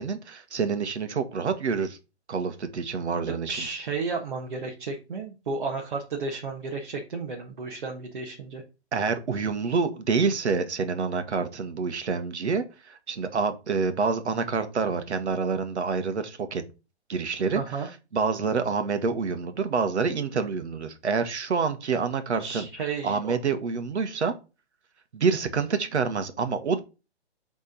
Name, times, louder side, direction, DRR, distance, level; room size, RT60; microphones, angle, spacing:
voice 1, 0.0-2.0 2.3-3.7 8.9-16.6 17.1-17.7 18.1-22.7 23.0-24.3 25.1-26.8, right 5 dB, 75° right, 1.4 m, -27 dB
voice 2, 3.5-8.6 17.5-17.9 22.4-23.4, right 4 dB, 45° right, 1.3 m, -33 dB
7.0 x 3.6 x 5.2 m
hypercardioid pair, 180°, 34 cm